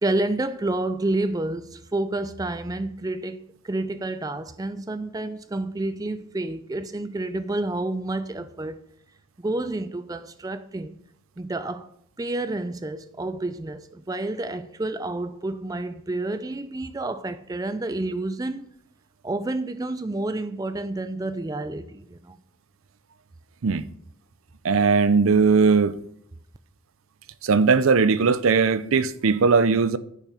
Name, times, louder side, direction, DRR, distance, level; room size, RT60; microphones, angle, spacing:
voice 1, 0.0-8.9 9.4-11.0 11.4-11.9 12.2-18.7 19.2-22.4, right 2 dB, 15° right, 0.4 m, -29 dB
voice 2, 24.6-26.0 27.4-30.0, right 5 dB, 75° right, 0.5 m, -19 dB
10.5 x 5.9 x 5.6 m
head